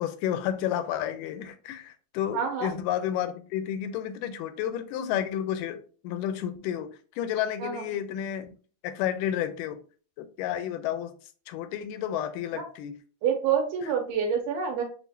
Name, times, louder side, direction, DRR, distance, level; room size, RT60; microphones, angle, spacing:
voice 1, 0.0-8.5 8.8-9.8 10.2-11.1 11.5-12.9, left 10 dB, 80° left, 10 dB, 2.0 m, -31 dB
voice 2, 2.3-2.7 7.6-7.9 12.5-12.6 13.2-14.8, right 7 dB, 75° right, 2 dB, 2.1 m, -27 dB
6.4 x 2.4 x 2.6 m, 0.40 s
omnidirectional pair, 3.9 m